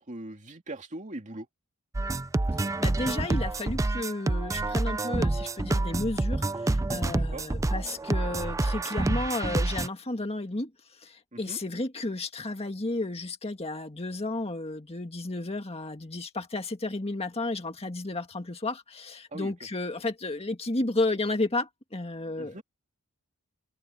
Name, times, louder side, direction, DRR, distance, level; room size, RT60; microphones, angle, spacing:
voice 1, 0.0-1.5 7.1-7.4 11.3-11.6 19.3-19.5 22.4-22.6, right 1 dB, 35° right, 2.6 m, -40 dB
sound 1, 1.9-9.9, right 2 dB, 15° right, 0.4 m, -28 dB
voice 2, 2.8-10.7 11.0-22.6, left 2 dB, 25° left, 1.8 m, -32 dB
open air
head